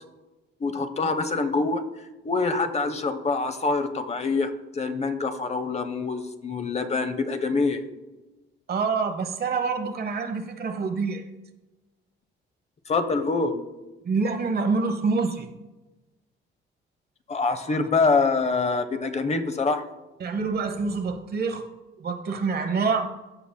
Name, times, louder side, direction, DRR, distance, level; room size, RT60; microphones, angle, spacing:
voice 1, 0.6-1.8 2.2-7.8 12.9-13.7 17.3-19.8, left 3 dB, 35° left, 9 dB, 0.7 m, -25 dB
voice 2, 8.7-11.2 14.0-15.5 17.7-17.8 20.2-21.6 22.0-23.1, right 4 dB, 50° right, 8 dB, 0.9 m, -26 dB
14.5 x 5.4 x 2.2 m, 1.1 s
cardioid pair, 90°, 20 cm